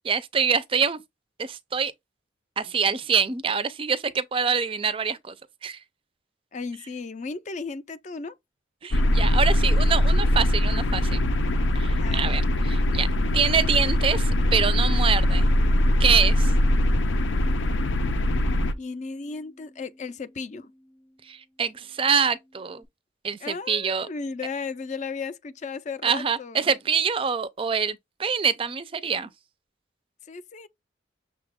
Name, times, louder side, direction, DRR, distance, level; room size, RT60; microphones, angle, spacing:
voice 1, 0.0-1.0 1.4-1.9 2.6-5.3 5.6-5.8 8.8-11.2 11.7-15.5 16.0-16.5 21.3-22.8 23.2-24.1 26.0-29.3, right 6 dB, 30° right, 0.4 m, -25 dB
voice 2, 6.5-8.3 12.0-12.3 18.8-20.7 23.4-26.7 30.3-30.7, left 4 dB, 40° left, 0.4 m, -35 dB
sound 1, 8.9-18.7, left 1 dB, 85° left, 0.5 m, -22 dB
Bass guitar, 16.6-22.9, equal, 10° left, 0.8 m, -51 dB
6.5 x 2.3 x 3.5 m
head